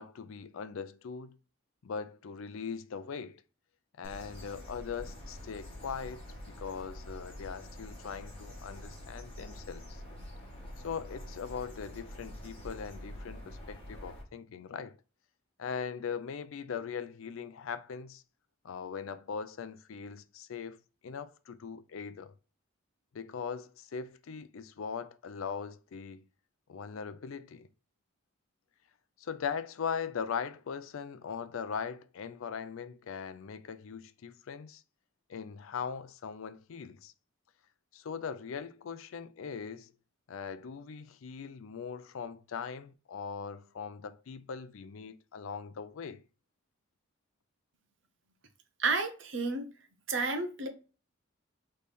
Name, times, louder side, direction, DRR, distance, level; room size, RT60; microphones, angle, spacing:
voice 1, 0.0-1.4 1.8-3.4 4.0-6.2 6.6-10.0 10.8-15.0 15.6-18.2 18.6-20.8 21.0-22.3 23.1-26.2 26.7-27.7 29.2-34.8 35.3-37.1 37.9-39.9 40.3-46.2, left 6 dB, 70° left, 0.4 m, -40 dB
sound 1, 4.0-14.2, left 1 dB, 25° left, 1.7 m, -46 dB
voice 2, 48.8-49.7 50.1-50.7, right 3 dB, 55° right, 0.8 m, -31 dB
4.1 x 3.2 x 3.4 m
head